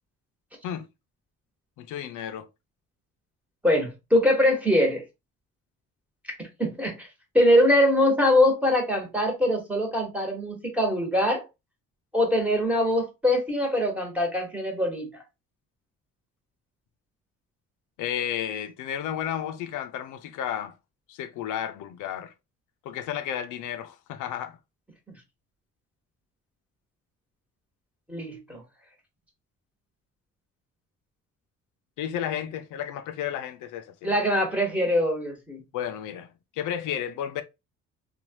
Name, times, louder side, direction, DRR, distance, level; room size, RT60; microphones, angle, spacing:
voice 1, 1.8-2.5 18.0-20.7 21.1-22.3 22.8-24.6 32.0-34.1 35.7-37.4, left 10 dB, 75° left, 0.5 m, -32 dB
voice 2, 3.6-5.0 6.6-7.1 7.3-11.4 12.1-15.1 28.1-28.6 34.0-35.6, left 1 dB, 5° right, 1.2 m, -23 dB
3.1 x 2.3 x 2.7 m
cardioid pair, 115°, 31 cm